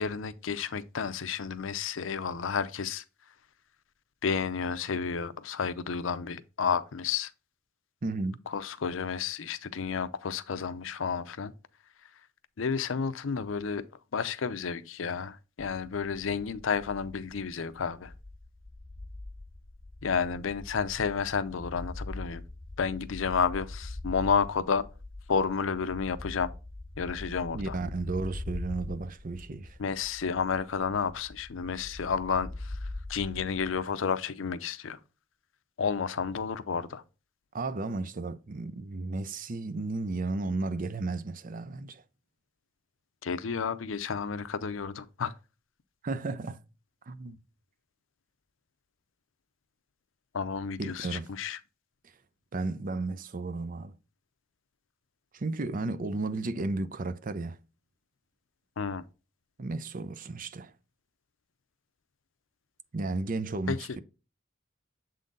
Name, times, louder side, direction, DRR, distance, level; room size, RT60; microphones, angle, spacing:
voice 1, 0.0-3.0 4.2-7.3 8.5-11.5 12.6-13.8 14.1-18.1 20.0-22.4 22.8-24.9 25.3-26.5 27.0-27.8 29.8-32.7 33.1-35.0 35.8-37.0 43.2-45.3 50.3-51.6 58.8-59.0 63.7-63.8, left 6 dB, 80° left, 0.6 m, -31 dB
voice 2, 8.0-8.4 27.5-29.8 37.5-42.0 46.0-46.6 47.1-47.4 50.8-51.3 52.5-54.0 55.3-57.6 59.6-60.7 62.9-64.0, right 3 dB, 45° right, 0.5 m, -33 dB
sound 1, 15.6-33.8, left 2 dB, 15° left, 0.4 m, -43 dB
7.4 x 3.8 x 3.9 m
head